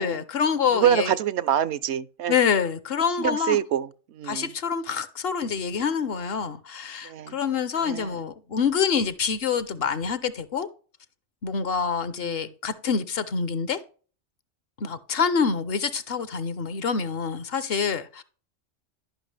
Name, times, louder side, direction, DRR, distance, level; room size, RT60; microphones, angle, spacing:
voice 1, 0.0-1.1 2.3-3.6 4.3-10.7 11.4-13.8 14.8-18.2, left 6 dB, 60° left, 0.9 m, -26 dB
voice 2, 0.7-2.3 3.2-4.5 7.0-7.4 7.8-8.2 12.2-12.5, right 10 dB, 75° right, 0.8 m, -26 dB
11.5 x 5.8 x 3.2 m
omnidirectional pair, 1.2 m